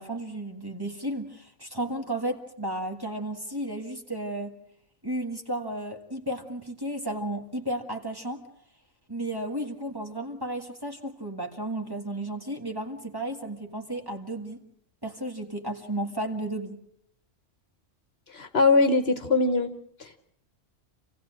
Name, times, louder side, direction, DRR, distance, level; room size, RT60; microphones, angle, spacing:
voice 1, 0.0-4.6 5.0-8.4 9.1-14.6 15.0-16.8, right 1 dB, 20° right, 3 dB, 1.7 m, -33 dB
voice 2, 18.3-19.7 20.0-20.2, left 3 dB, 55° left, 9 dB, 1.3 m, -22 dB
27.0 x 16.5 x 7.6 m, 0.71 s
omnidirectional pair, 1.3 m